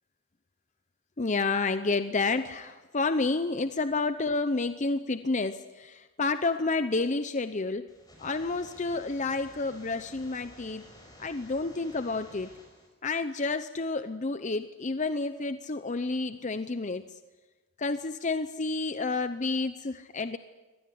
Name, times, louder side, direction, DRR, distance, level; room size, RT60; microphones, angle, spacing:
voice 1, 1.2-7.9 8.2-10.8 11.2-12.5 13.0-17.0 17.8-20.4, left 3 dB, 35° left, 10 dB, 0.7 m, -30 dB
sound 1, 7.9-12.9, left 1 dB, 20° left, 6.0 m, -52 dB
23.5 x 18.5 x 10.0 m, 1.2 s
head